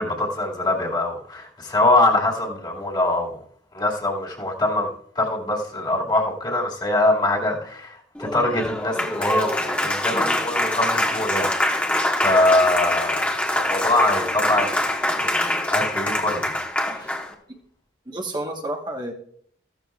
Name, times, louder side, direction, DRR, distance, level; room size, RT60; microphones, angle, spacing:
voice 1, 0.0-3.3 3.7-15.4 15.7-16.4 17.0-17.1, left 2 dB, 25° left, -2 dB, 2.2 m, -23 dB
Applause, 8.1-17.3, left 1 dB, 5° left, 1.3 m, -24 dB
voice 2, 18.1-19.1, right 1 dB, 25° right, 1 dB, 1.3 m, -30 dB
14.5 x 13.0 x 2.4 m, 0.63 s
head